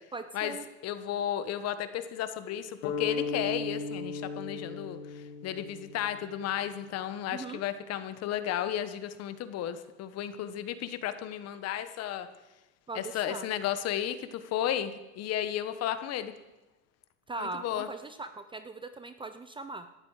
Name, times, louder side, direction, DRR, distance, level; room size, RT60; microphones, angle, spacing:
voice 1, 0.1-0.6 7.3-7.6 12.9-13.5 17.3-19.9, right 3 dB, 15° right, 10 dB, 0.6 m, -40 dB
voice 2, 0.8-12.3 12.9-16.3 17.4-17.9, left 10 dB, 40° left, 11 dB, 1.3 m, -33 dB
sound 1, 2.8-6.8, left 4 dB, 60° left, 2.8 m, -37 dB
18.0 x 12.0 x 5.0 m, 1.0 s
supercardioid pair, 115°, 37 cm